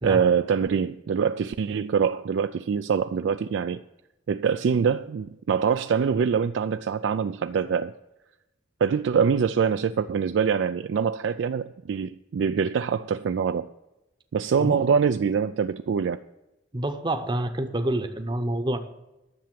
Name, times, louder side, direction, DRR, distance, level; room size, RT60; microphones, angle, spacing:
voice 1, 0.0-3.8 4.3-7.9 8.8-13.7 14.3-16.2, right 6 dB, 75° right, 11 dB, 0.3 m, -24 dB
voice 2, 14.6-14.9 16.7-18.8, right 1 dB, 25° right, 7 dB, 0.8 m, -27 dB
10.5 x 7.0 x 7.5 m, 0.96 s
head